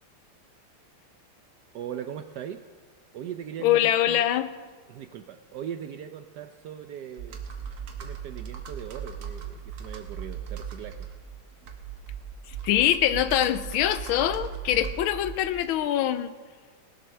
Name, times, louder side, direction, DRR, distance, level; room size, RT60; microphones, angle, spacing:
voice 1, 1.7-2.6 3.1-4.3 4.9-7.4 8.0-11.1, right 9 dB, 75° right, 8 dB, 1.0 m, -39 dB
voice 2, 3.6-4.5 12.6-16.3, left 12 dB, 80° left, 13 dB, 1.4 m, -24 dB
Computer keyboard, 7.1-15.8, right 7 dB, 90° right, 2.1 m, -38 dB
19.0 x 7.8 x 6.5 m, 1.5 s
omnidirectional pair, 2.3 m